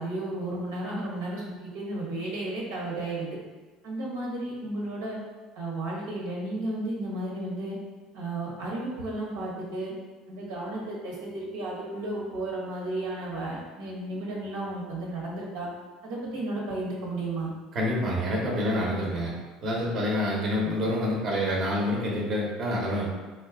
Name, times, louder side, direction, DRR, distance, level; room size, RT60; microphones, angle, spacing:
voice 1, 0.0-3.4 3.8-5.2 5.5-7.8 8.1-9.9 10.3-15.7 16.0-17.5, right 2 dB, 90° right, -4 dB, 1.2 m, -33 dB
voice 2, 17.7-19.3 19.6-23.1, left 1 dB, 45° right, -3 dB, 0.9 m, -27 dB
3.9 x 2.3 x 3.6 m, 1.3 s
supercardioid pair, 105°, 0 cm